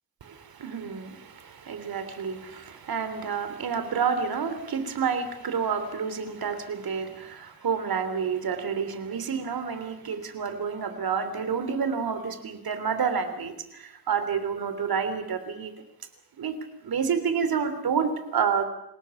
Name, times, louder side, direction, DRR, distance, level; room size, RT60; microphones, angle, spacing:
voice 1, 0.2-15.7 16.4-16.6 16.8-18.7, right 6 dB, 75° right, 9 dB, 3.5 m, -29 dB
28.0 x 17.5 x 7.2 m, 0.83 s
wide cardioid pair, 100°, 37 cm